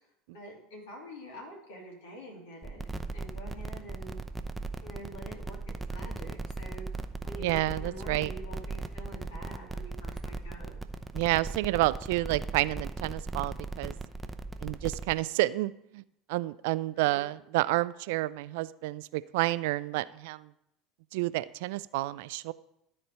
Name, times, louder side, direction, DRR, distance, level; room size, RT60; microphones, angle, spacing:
voice 1, 0.3-2.9 3.1-4.2 4.8-6.9 7.2-10.8 17.0-17.3, right 1 dB, 70° left, -1 dB, 2.8 m, -46 dB
sound 1, 2.6-15.1, right 3 dB, 15° right, 0.7 m, -38 dB
voice 2, 7.4-8.3 11.1-13.9 14.6-16.0 16.3-20.5 21.1-22.5, right 18 dB, 70° right, 17 dB, 0.3 m, -30 dB
13.0 x 4.3 x 5.4 m, 0.80 s
hypercardioid pair, 70°, 0 cm